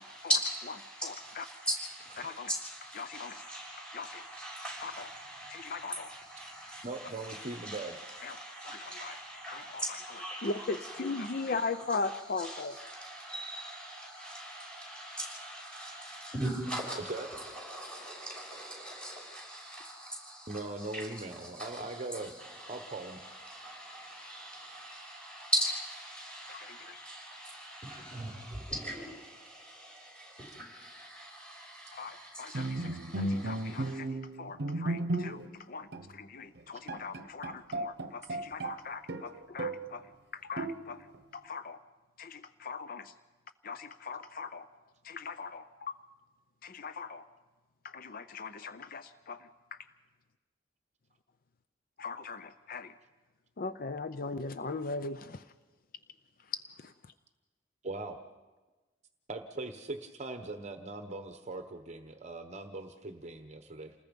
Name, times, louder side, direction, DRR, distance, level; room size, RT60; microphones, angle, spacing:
voice 1, 0.0-34.0, right 1 dB, 5° left, 6.5 m, -40 dB
voice 2, 1.0-1.4 2.2-2.5 3.0-3.4 3.9-4.2 4.8-4.9 5.5-6.1 8.2-8.4 8.6-9.2 9.5-9.8 10.4-12.7 26.5-27.1 31.9-40.1 40.3-41.1 41.3-41.8 42.2-43.1 43.6-44.7 45.0-46.0 46.6-47.2 47.8-49.8 52.0-52.9 53.6-55.4 56.5-56.9, left 4 dB, 50° left, 0.6 m, -39 dB
voice 3, 6.8-8.0 17.1-17.3 20.5-22.3 22.7-23.2 57.8-58.2 59.3-63.9, right 2 dB, 40° right, 1.0 m, -40 dB
Bowed string instrument, 32.5-35.6 35.9-36.1 36.6-36.7 36.9-38.8 39.1-39.9 40.6-41.2, right 2 dB, 60° right, 0.9 m, -35 dB
28.5 x 20.0 x 5.3 m
head